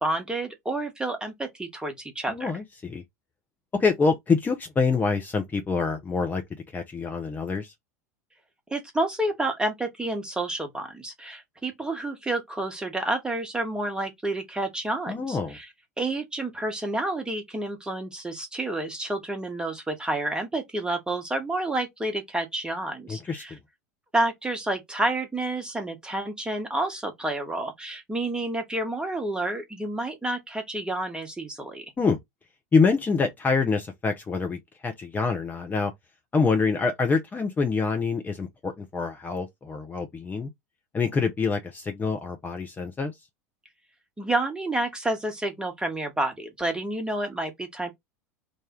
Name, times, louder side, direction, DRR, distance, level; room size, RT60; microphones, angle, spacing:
voice 1, 0.0-2.5 8.7-15.7 16.0-23.5 24.1-31.8 44.2-47.9, right 2 dB, 10° right, 1.4 m, -29 dB
voice 2, 2.3-3.0 3.7-6.4 6.7-7.7 15.1-15.6 23.1-23.6 32.0-32.2 32.7-35.9 36.3-40.5 40.9-43.1, left 4 dB, 20° left, 0.8 m, -26 dB
3.3 x 2.6 x 3.7 m
figure-of-eight pair, 80°, 9 cm